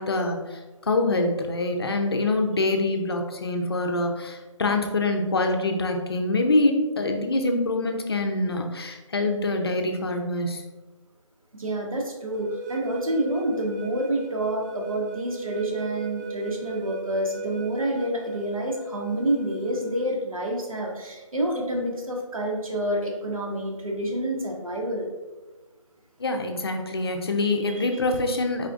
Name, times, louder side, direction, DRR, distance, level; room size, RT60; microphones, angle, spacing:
voice 1, 0.0-10.6 26.2-28.7, left 2 dB, 45° left, 3 dB, 0.5 m, -25 dB
voice 2, 11.6-25.1 27.7-27.9, right 1 dB, 85° right, 0 dB, 1.2 m, -28 dB
sound 1, 12.3-20.1, right 3 dB, 35° right, 0.6 m, -37 dB
4.2 x 3.7 x 2.4 m, 1.2 s
figure-of-eight pair, 170°, 17 cm